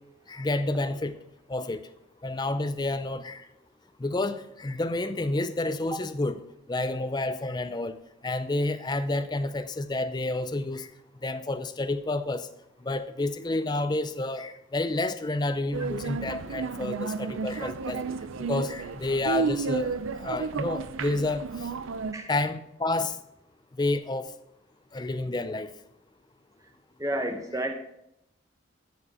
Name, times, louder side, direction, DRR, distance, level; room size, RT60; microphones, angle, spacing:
voice 1, 0.3-1.2 1.5-1.8 2.2-3.5 4.0-6.4 6.7-8.0 8.2-10.9 11.2-12.5 12.8-18.0 18.4-21.7 22.3-23.2 23.8-24.3 24.9-25.7, left 2 dB, 20° left, 0.4 m, -29 dB
sound 1, 15.7-22.1, right 5 dB, 80° right, 0.5 m, -32 dB
voice 2, 27.0-27.7, right 1 dB, 15° right, 0.9 m, -30 dB
14.0 x 4.9 x 4.8 m
head